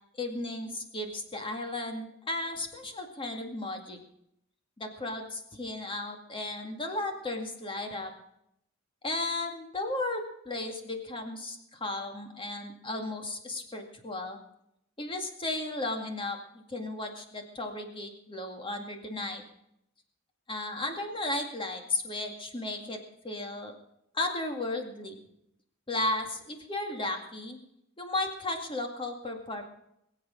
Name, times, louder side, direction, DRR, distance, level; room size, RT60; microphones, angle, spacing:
voice 1, 0.2-4.0 4.8-8.1 9.0-14.4 15.0-19.4 20.5-23.0 23.2-23.7 24.1-25.2 25.9-27.6 28.0-29.6, left 2 dB, 25° left, 4 dB, 2.1 m, -34 dB
21.5 x 8.1 x 6.3 m, 0.78 s
head